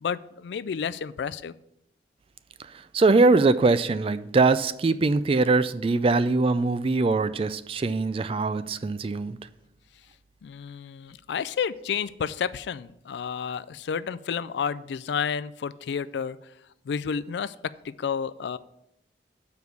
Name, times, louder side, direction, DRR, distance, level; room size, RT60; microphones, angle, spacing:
voice 1, 0.0-1.5 10.4-16.4 16.9-17.5 17.8-18.6, left 6 dB, 75° left, 16 dB, 0.3 m, -31 dB
voice 2, 2.9-9.4, right 3 dB, 30° right, 14 dB, 0.3 m, -22 dB
7.1 x 4.6 x 6.8 m, 0.80 s
head